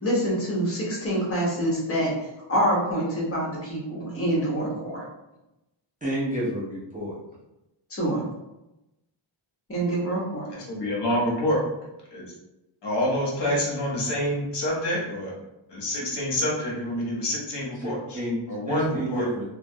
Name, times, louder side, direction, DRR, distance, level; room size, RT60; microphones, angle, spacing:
voice 1, 0.0-2.1 2.5-5.0 7.9-8.2 9.7-10.5, right 1 dB, 30° left, -4 dB, 0.8 m, -26 dB
voice 2, 6.0-7.1 17.8-18.4 18.7-19.4, equal, 15° right, -9 dB, 0.5 m, -30 dB
voice 3, 10.5-11.6 12.1-12.2 12.8-15.3 15.7-18.2 18.5-19.2, equal, 60° left, -4 dB, 0.8 m, -27 dB
2.2 x 2.1 x 2.6 m, 0.93 s
wide cardioid pair, 145°, 48 cm